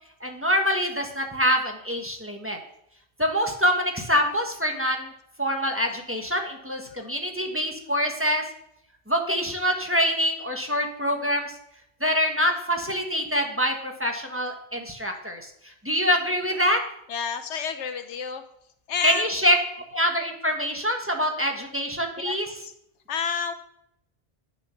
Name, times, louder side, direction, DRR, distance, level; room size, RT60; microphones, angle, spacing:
voice 1, 0.2-2.6 3.2-5.1 5.4-8.4 9.1-11.5 12.0-15.5 15.8-16.8 19.0-19.6 19.9-22.5, equal, 10° right, 2 dB, 1.3 m, -25 dB
voice 2, 17.1-18.4 18.9-19.2 22.2-22.3 22.6-22.7 23.1-23.5, left 6 dB, 85° left, 9 dB, 1.1 m, -29 dB
9.2 x 6.9 x 5.8 m, 0.76 s
omnidirectional pair, 1.2 m